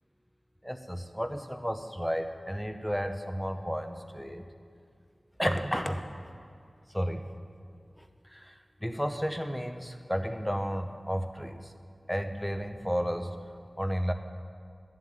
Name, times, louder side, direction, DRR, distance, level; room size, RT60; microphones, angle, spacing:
voice 1, 0.6-4.4 5.4-6.0 6.9-7.3 8.0-11.7 12.1-13.4 13.8-14.1, equal, 5° left, 7 dB, 0.9 m, -32 dB
11.0 x 7.7 x 9.1 m, 2.2 s
wide cardioid pair, 50°, 0 cm